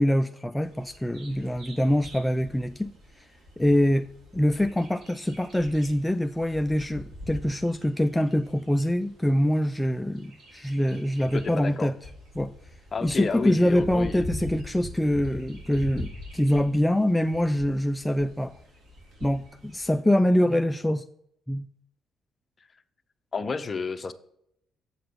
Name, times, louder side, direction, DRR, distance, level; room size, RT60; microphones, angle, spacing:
voice 1, 0.0-2.9 3.6-4.1 4.3-11.9 12.4-12.5 13.0-18.5 19.2-21.0 21.5-21.7, left 1 dB, 5° left, 8 dB, 0.4 m, -24 dB
Bird vocalization bird call bird song, 0.6-20.0, left 1 dB, 65° right, 3.7 m, -44 dB
voice 2, 11.3-11.9 12.9-14.2 23.3-24.1, left 5 dB, 35° left, 10 dB, 0.8 m, -31 dB
7.8 x 5.8 x 6.8 m, 0.75 s
cardioid pair, 90°, 0 cm